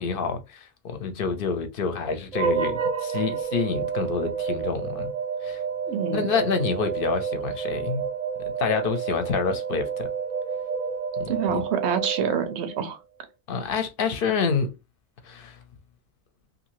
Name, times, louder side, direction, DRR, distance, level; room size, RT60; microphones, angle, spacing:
voice 1, 0.0-5.1 5.4-5.6 6.1-8.0 8.6-10.1 11.2-11.6 13.5-14.7 15.2-15.6, left 5 dB, 60° left, 0.7 m, -28 dB
sound 1, 2.3-12.9, right 6 dB, 45° right, 0.6 m, -30 dB
voice 2, 5.9-6.3 11.3-13.0, right 7 dB, 85° right, 0.9 m, -27 dB
2.7 x 2.6 x 2.9 m
omnidirectional pair, 1.1 m